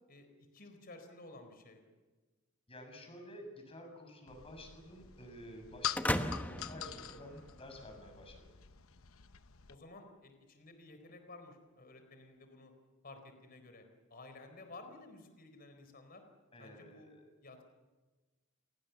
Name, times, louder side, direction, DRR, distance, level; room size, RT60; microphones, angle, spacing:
voice 1, 0.5-1.8 9.7-12.7 13.0-13.8 14.1-16.2 16.6-17.1 17.4-17.7, left 2 dB, 45° left, 7 dB, 4.2 m, -53 dB
voice 2, 2.7-8.4 16.5-17.3, equal, 25° left, 4 dB, 7.3 m, -51 dB
sound 1, 4.3-9.8, left 10 dB, 80° left, 0.9 m, -45 dB
sound 2, 6.0-7.9, left 1 dB, 10° left, 1.2 m, -36 dB
29.5 x 23.0 x 7.1 m, 1.2 s
head